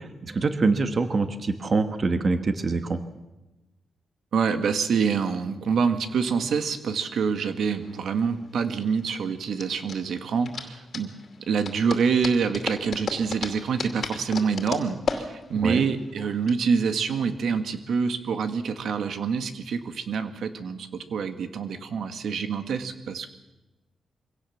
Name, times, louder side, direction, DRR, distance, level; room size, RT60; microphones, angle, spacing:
voice 1, 0.0-3.0 15.6-15.9, right 3 dB, 40° right, 9 dB, 1.4 m, -25 dB
voice 2, 4.3-11.1 11.5-23.3, right 6 dB, 80° right, 9 dB, 1.7 m, -26 dB
sound 1, 7.6-16.5, left 5 dB, 55° left, 2.6 m, -35 dB
24.0 x 17.0 x 7.2 m, 1.0 s
wide cardioid pair, 115°, 0 cm